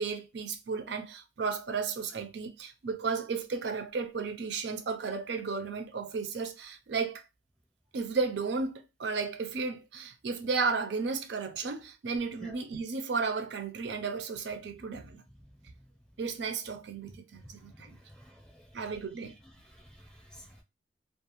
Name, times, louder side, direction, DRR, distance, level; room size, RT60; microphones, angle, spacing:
voice 1, 0.0-7.2 7.9-15.2 16.2-18.0 18.7-19.3, right 4 dB, 70° right, 0.4 m, -34 dB
voice 2, 17.4-18.8 19.4-20.6, equal, 5° left, 0.6 m, -53 dB
2.4 x 2.3 x 2.9 m
head